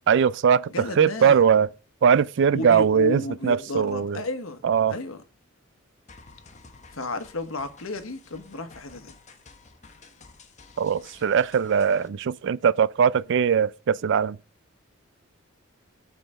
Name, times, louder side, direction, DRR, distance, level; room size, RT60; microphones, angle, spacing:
voice 1, 0.1-1.7 2.0-4.2 4.6-4.9 10.8-14.4, right 7 dB, 60° right, 0.4 m, -21 dB
voice 2, 0.7-1.4 2.5-4.6 4.9-5.2 6.9-9.1, left 3 dB, 85° left, 1.2 m, -33 dB
sound 1, 6.1-12.1, left 4 dB, 35° left, 1.1 m, -52 dB
7.7 x 5.0 x 6.0 m
head